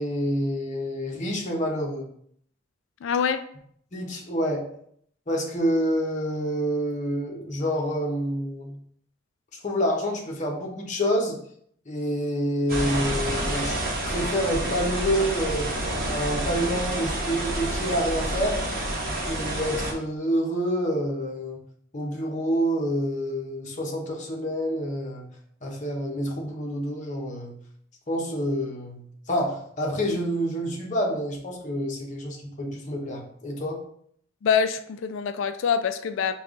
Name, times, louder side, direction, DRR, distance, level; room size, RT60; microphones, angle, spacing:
voice 1, 0.0-2.1 3.9-4.7 5.3-8.8 9.6-11.4 11.9-13.8 14.0-15.7 16.1-18.6 19.3-21.6 21.9-25.3 25.6-27.6 28.1-33.8, equal, 40° left, -1 dB, 0.8 m, -27 dB
voice 2, 3.0-3.4 34.4-36.3, left 7 dB, 70° left, 10 dB, 0.3 m, -25 dB
sound 1, 12.7-19.9, right 1 dB, 50° right, 0.9 m, -28 dB
5.3 x 2.3 x 3.6 m, 0.65 s
head